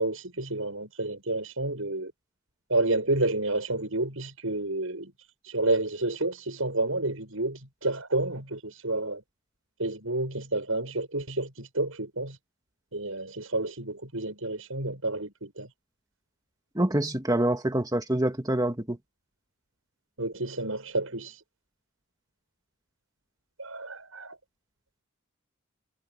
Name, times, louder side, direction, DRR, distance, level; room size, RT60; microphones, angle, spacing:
voice 1, 0.0-2.1 2.7-5.1 5.4-9.2 9.8-12.4 12.9-15.7 20.2-21.4 23.6-24.4, right 2 dB, 70° right, 7.9 m, -30 dB
voice 2, 16.8-19.0, right 1 dB, 15° right, 2.0 m, -26 dB
head